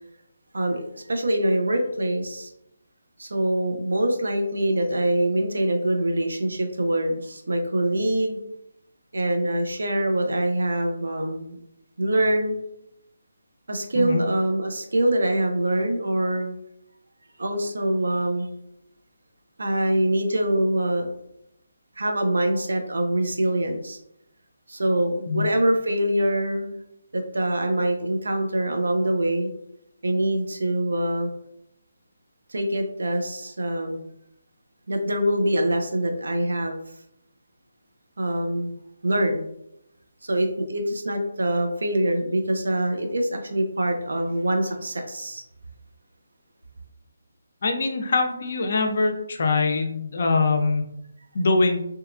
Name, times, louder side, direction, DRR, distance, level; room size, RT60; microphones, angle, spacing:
voice 1, 0.5-2.5 3.2-8.4 9.1-11.6 12.0-12.6 13.7-16.6 17.4-18.5 19.6-21.1 22.0-24.0 24.7-26.7 27.1-29.5 30.0-31.3 32.5-34.0 34.9-36.8 38.2-38.7 39.0-39.4 40.2-45.4, right 1 dB, 75° right, 4 dB, 0.5 m, -24 dB
voice 2, 47.6-50.8 51.3-51.8, left 3 dB, 55° left, 4 dB, 0.4 m, -23 dB
2.8 x 2.3 x 2.3 m, 0.80 s
figure-of-eight pair, 155°, 0 cm